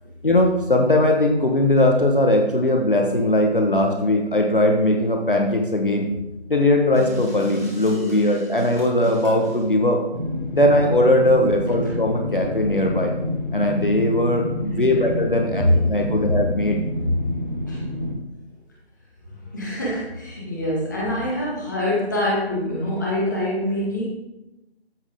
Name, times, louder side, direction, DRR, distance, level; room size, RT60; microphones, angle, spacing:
voice 1, 0.2-6.1 6.5-10.0 10.5-13.1 13.5-16.8, left 1 dB, 50° left, 3 dB, 1.3 m, -19 dB
sound 1, 6.9-9.6, left 1 dB, 15° right, 1.1 m, -32 dB
sound 2, 10.1-18.1, left 1 dB, 45° right, 1.7 m, -28 dB
voice 2, 14.6-15.1 15.6-15.8 16.2-16.4 17.0-17.1 17.7-17.8 19.3-24.0, left 1 dB, 15° left, -6 dB, 1.9 m, -25 dB
13.5 x 6.1 x 3.6 m, 0.94 s
figure-of-eight pair, 170°, 33 cm